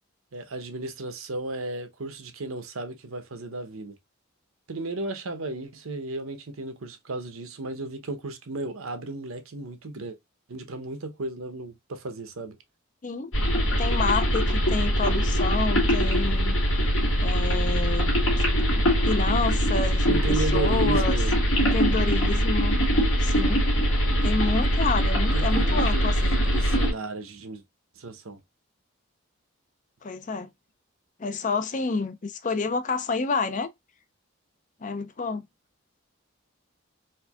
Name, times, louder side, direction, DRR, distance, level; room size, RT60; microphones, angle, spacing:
voice 1, 0.3-3.9 4.7-10.2 10.5-12.6 20.1-21.4 25.3-27.6 28.0-28.4, right 2 dB, 80° right, 0.8 m, -34 dB
sound 1, 13.3-26.9, equal, 75° left, 2.2 m, -22 dB
voice 2, 13.8-16.6 17.2-18.1 18.4-18.5 19.0-21.1 21.6-22.8 23.2-23.6 24.2-26.4 30.0-30.5 31.2-33.7 34.8-35.5, left 4 dB, 35° left, 0.4 m, -29 dB
4.4 x 2.6 x 2.3 m
head